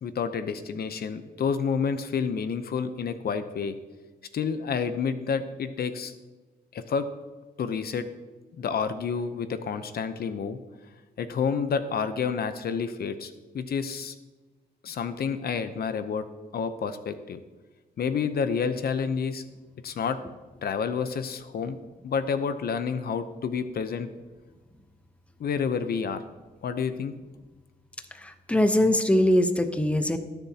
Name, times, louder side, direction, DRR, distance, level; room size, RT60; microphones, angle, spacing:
voice 1, 0.0-3.8 4.3-6.1 6.7-7.1 7.6-8.1 8.5-10.6 11.2-14.1 14.8-16.2 16.5-17.4 18.0-19.4 19.8-20.2 20.6-21.8 22.0-24.1 25.4-26.2 26.6-27.1, left 6 dB, 65° left, 10 dB, 0.7 m, -29 dB
voice 2, 28.2-30.2, left 1 dB, 5° left, 8 dB, 0.8 m, -22 dB
20.0 x 7.1 x 2.9 m, 1.3 s
cardioid pair, 95°, 17 cm